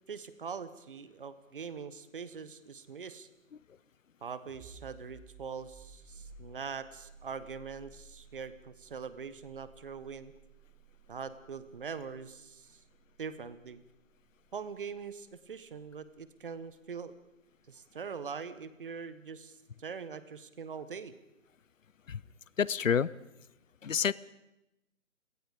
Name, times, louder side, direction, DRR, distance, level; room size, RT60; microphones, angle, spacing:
voice 1, 0.1-3.3 4.2-10.3 11.1-12.8 13.2-13.8 14.5-17.1 17.7-21.1, right 6 dB, 40° right, 14 dB, 1.3 m, -42 dB
sound 1, 4.5-15.9, right 4 dB, ahead, 0.7 m, -57 dB
voice 2, 22.6-23.1 23.8-24.1, left 7 dB, 70° left, 21 dB, 0.8 m, -28 dB
29.5 x 18.5 x 5.1 m, 0.94 s
figure-of-eight pair, 150°, 40 cm